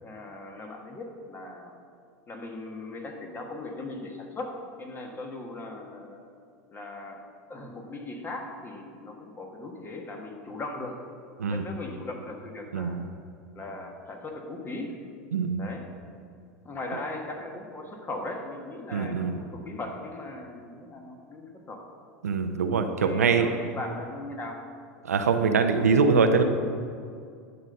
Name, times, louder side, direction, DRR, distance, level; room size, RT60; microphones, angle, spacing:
voice 1, 0.0-1.7 2.3-6.2 6.7-7.2 7.5-11.0 11.5-13.0 13.5-14.9 15.6-15.8 16.6-21.8 23.0-24.6, left 2 dB, 25° left, 2 dB, 1.5 m, -38 dB
voice 2, 12.7-13.0 15.3-15.7 18.9-19.3 22.2-23.5 25.0-26.4, right 5 dB, 85° right, 7 dB, 0.6 m, -23 dB
11.0 x 4.0 x 6.5 m, 2.3 s
hypercardioid pair, 90°, 8 cm